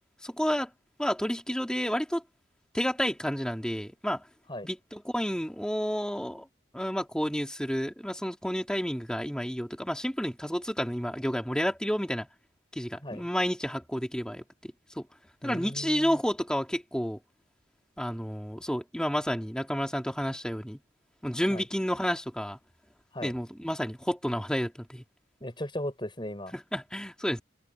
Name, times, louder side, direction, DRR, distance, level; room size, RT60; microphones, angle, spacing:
voice 1, 0.2-0.7 1.0-2.2 2.7-4.2 4.6-6.5 6.7-12.3 12.7-15.1 15.4-17.2 18.0-20.8 21.2-22.6 23.2-25.0 26.5-27.4, equal, 5° left, 3.4 m, -30 dB
voice 2, 15.4-16.2 21.5-21.6 23.1-23.3 25.4-26.6, left 1 dB, 25° left, 7.6 m, -37 dB
head